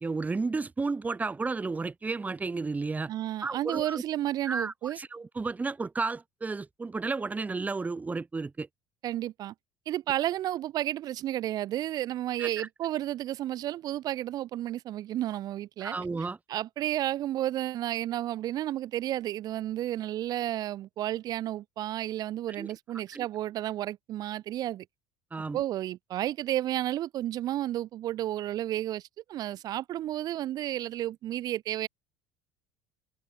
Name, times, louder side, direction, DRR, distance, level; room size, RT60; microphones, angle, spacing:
voice 1, 0.0-3.1 3.4-4.0 4.5-8.7 12.4-12.7 15.8-16.4 22.6-22.7 23.1-23.3 25.3-25.6, right 4 dB, 20° right, 1.8 m, -32 dB
voice 2, 3.1-5.0 9.0-9.5 9.9-16.0 16.5-24.9 25.5-31.9, right 13 dB, 55° right, 1.8 m, -32 dB
hypercardioid pair, 75°, 8 cm